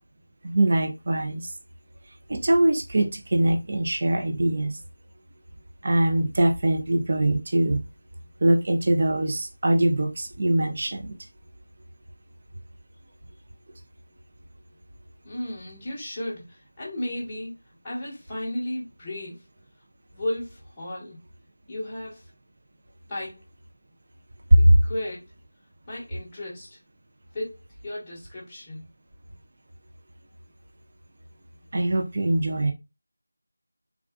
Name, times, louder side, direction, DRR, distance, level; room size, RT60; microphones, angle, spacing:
voice 1, 0.4-1.5 2.3-4.8 5.8-7.8 8.4-11.1 24.5-24.8 31.7-32.7, right 1 dB, 30° right, 4 dB, 0.5 m, -22 dB
voice 2, 15.2-17.5 17.8-19.4 20.1-21.2 21.7-22.2 23.1-23.4 24.6-25.3 25.9-26.8 27.3-27.6 27.8-28.8, left 1 dB, 10° left, -8 dB, 0.9 m, -34 dB
3.4 x 2.5 x 2.2 m, 0.24 s
figure-of-eight pair, 175°, 0 cm